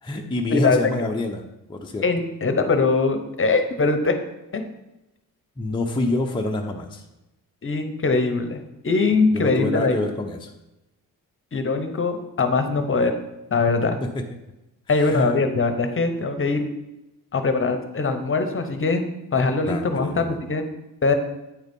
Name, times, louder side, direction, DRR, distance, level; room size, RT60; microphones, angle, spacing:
voice 1, 0.0-1.4 1.7-2.0 5.6-7.0 9.3-10.5 14.0-14.3 14.9-15.3 19.7-20.4, left 2 dB, 15° left, 1 dB, 0.7 m, -27 dB
voice 2, 2.0-4.2 4.5-4.6 7.6-10.0 11.5-13.1 13.5-14.0 14.9-16.6 17.3-20.6 21.0-21.1, left 3 dB, 35° left, 7 dB, 0.9 m, -22 dB
9.0 x 3.9 x 5.3 m, 0.95 s
cardioid pair, 95°, 36 cm